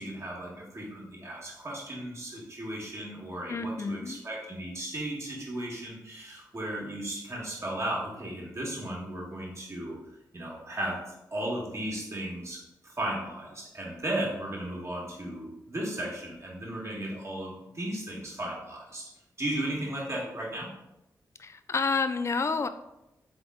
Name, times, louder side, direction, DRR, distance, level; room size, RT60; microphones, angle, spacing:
voice 1, 0.0-9.9 10.3-11.0 11.3-19.1 19.4-20.7, right 1 dB, 40° right, -3 dB, 1.6 m, -35 dB
voice 2, 3.5-4.2 21.4-22.7, left 4 dB, 40° left, 10 dB, 0.4 m, -29 dB
3.7 x 3.5 x 3.7 m, 0.89 s
cardioid pair, 55°, 7 cm